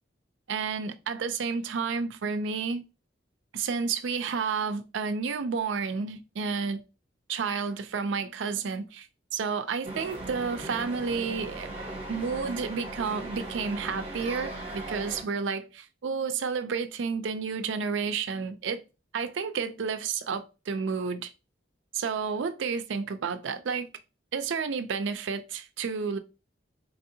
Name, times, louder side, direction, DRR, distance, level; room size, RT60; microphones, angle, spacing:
voice 1, 0.5-2.8 3.5-6.8 7.3-9.1 9.3-11.7 12.1-18.8 19.1-21.3 21.9-23.9 24.3-26.2, right 5 dB, 75° right, 0.4 m, -31 dB
sound 1, 9.8-15.2, right 2 dB, 30° right, 0.9 m, -38 dB
4.1 x 2.7 x 2.7 m
head